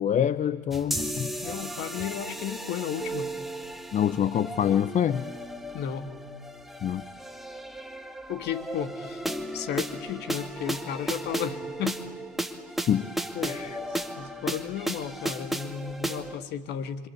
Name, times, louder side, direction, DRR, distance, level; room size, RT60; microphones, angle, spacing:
voice 1, 0.0-1.3 3.9-5.3 6.8-7.0 12.9-13.1 13.4-13.8, left 9 dB, 35° left, 17 dB, 0.8 m, -26 dB
sound 1, 0.7-16.4, right 1 dB, ahead, 2.0 m, -35 dB
voice 2, 1.4-3.3 5.7-6.1 8.3-9.3 9.5-12.0 13.3-13.6 13.9-17.1, left 9 dB, 55° left, 12 dB, 2.1 m, -34 dB
27.0 x 25.0 x 8.4 m, 1.5 s
hypercardioid pair, 85°, 21 cm